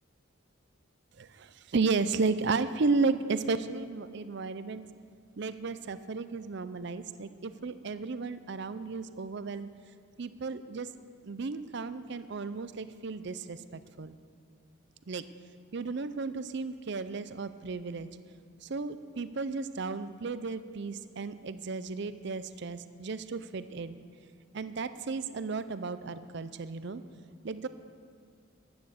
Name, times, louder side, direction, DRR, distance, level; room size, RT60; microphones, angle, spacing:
voice 1, 1.2-4.9 5.4-9.7 10.2-10.9 11.2-14.2 15.1-15.2 15.7-18.1 18.6-24.0 24.5-27.0 27.4-27.7, right 4 dB, 55° right, 13 dB, 0.5 m, -33 dB
14.0 x 10.0 x 6.5 m, 2.3 s
head